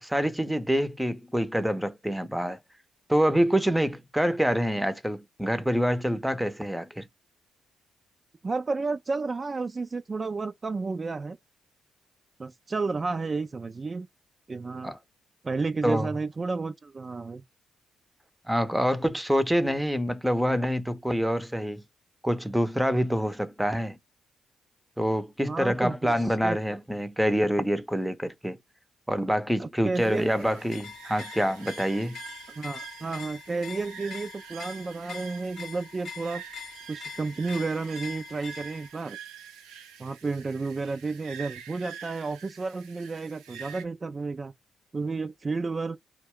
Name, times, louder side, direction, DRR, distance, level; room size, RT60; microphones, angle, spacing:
voice 1, 0.0-2.6 3.1-7.1 14.8-15.0 15.8-16.1 18.5-21.8 22.2-24.0 25.0-28.6 29.1-32.2, equal, 5° right, 0.7 m, -26 dB
voice 2, 8.4-11.4 12.4-14.1 14.5-14.9 15.4-17.4 25.4-26.1 26.4-26.6 29.6-30.3 32.6-36.4 36.9-39.2 40.0-44.5 44.9-46.0, right 3 dB, 35° right, 0.4 m, -31 dB
sound 1, 29.9-43.8, right 7 dB, 80° right, 0.6 m, -46 dB
sound 2, 30.6-38.9, left 6 dB, 60° left, 0.5 m, -43 dB
2.2 x 2.1 x 3.6 m
hypercardioid pair, 45°, 0 cm